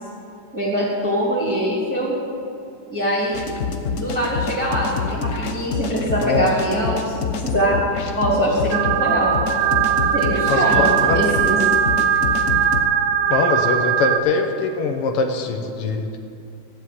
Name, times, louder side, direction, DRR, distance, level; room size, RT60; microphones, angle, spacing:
voice 1, 0.5-2.1 2.9-3.4 3.9-7.8 8.2-9.3 10.1-11.6, right 1 dB, 10° right, -8 dB, 2.8 m, -22 dB
sound 1, 3.3-12.8, left 5 dB, 55° left, 0.9 m, -27 dB
sound 2, 8.7-14.2, right 9 dB, 80° right, 1.6 m, -20 dB
voice 2, 10.5-11.2 13.3-16.1, left 4 dB, 85° left, 5 dB, 2.0 m, -22 dB
14.5 x 7.1 x 9.4 m, 2.5 s
omnidirectional pair, 2.4 m